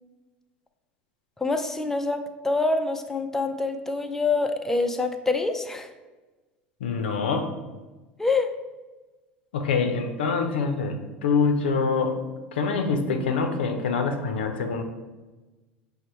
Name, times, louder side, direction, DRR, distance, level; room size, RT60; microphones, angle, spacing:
voice 1, 1.4-5.9 8.2-8.5, left 3 dB, 5° left, 5 dB, 0.4 m, -26 dB
voice 2, 6.8-7.5 9.5-12.2 12.5-14.8, left 4 dB, 80° left, 6 dB, 0.5 m, -25 dB
5.2 x 2.1 x 4.3 m, 1.2 s
hypercardioid pair, 80°, 6 cm